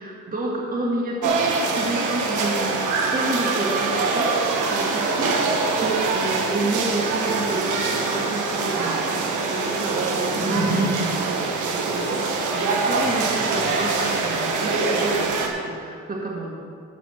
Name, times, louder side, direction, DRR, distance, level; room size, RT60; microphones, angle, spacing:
voice 1, 0.0-4.3 4.7-16.5, right 1 dB, 30° right, -2 dB, 1.9 m, -29 dB
city town Havana afternoon balcony, 1.2-15.5, right 4 dB, 80° right, 1.3 m, -24 dB
12.0 x 4.1 x 7.7 m, 2.3 s
cardioid pair, 90°, 30 cm